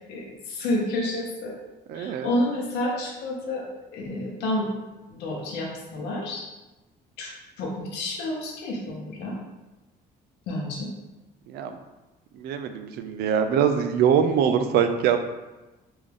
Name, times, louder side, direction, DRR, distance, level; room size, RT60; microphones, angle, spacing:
voice 1, 0.1-1.5 1.9-3.6 3.9-4.7 5.1-6.4 7.2-7.3 7.6-9.4 10.5-10.9, left 1 dB, 85° left, -1 dB, 0.9 m, -29 dB
voice 2, 1.9-2.3 11.5-11.8 12.3-15.2, right 8 dB, 70° right, 8 dB, 0.4 m, -23 dB
3.5 x 2.5 x 3.4 m, 1.1 s
cardioid pair, 110°, 17 cm